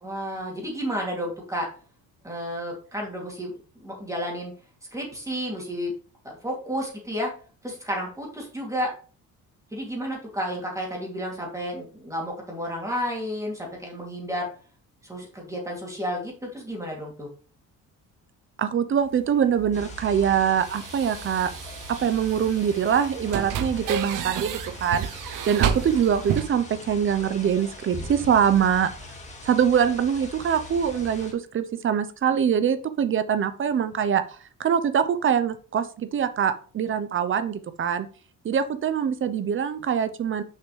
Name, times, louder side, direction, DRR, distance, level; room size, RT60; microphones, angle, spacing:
voice 1, 0.0-1.7 2.2-4.5 4.9-5.9 6.2-7.3 7.6-8.9 9.7-14.5 15.0-17.3, equal, 10° right, -2 dB, 2.7 m, -31 dB
voice 2, 18.6-21.5 21.9-28.9 29.4-38.1 38.4-40.4, right 8 dB, 35° right, 11 dB, 0.7 m, -24 dB
sound 1, 19.1-26.5, right 9 dB, 70° right, 0.8 m, -32 dB
sound 2, 19.7-31.3, left 2 dB, 20° left, 1.9 m, -41 dB
6.7 x 5.8 x 3.3 m, 0.39 s
cardioid pair, 135°, 33 cm